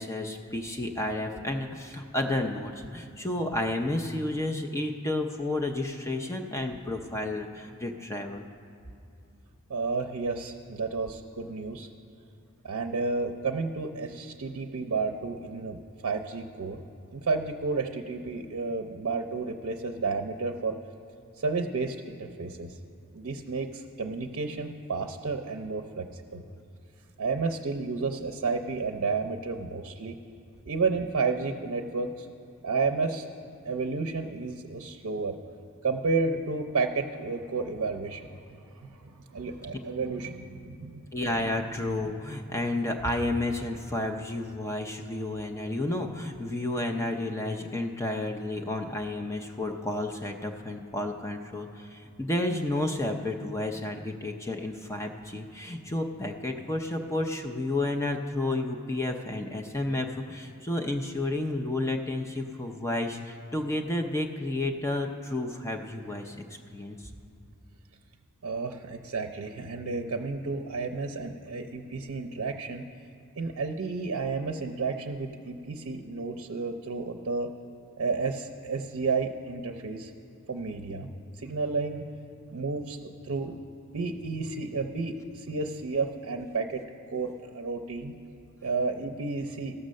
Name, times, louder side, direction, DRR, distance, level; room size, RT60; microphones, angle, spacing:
voice 1, 0.0-8.5 41.1-66.4 66.7-67.0, left 2 dB, 15° left, 3 dB, 0.5 m, -31 dB
voice 2, 9.7-11.9 12.6-16.8 17.1-20.8 21.4-22.8 23.1-26.4 27.2-30.2 30.7-32.3 32.6-33.3 33.6-35.4 35.8-41.0 68.4-72.8 73.4-77.5 78.0-80.1 80.5-81.1 81.4-82.0 82.5-83.6 83.9-88.1 88.6-89.7, right 4 dB, 70° right, 5 dB, 0.5 m, -31 dB
14.5 x 6.5 x 6.3 m, 2.6 s
head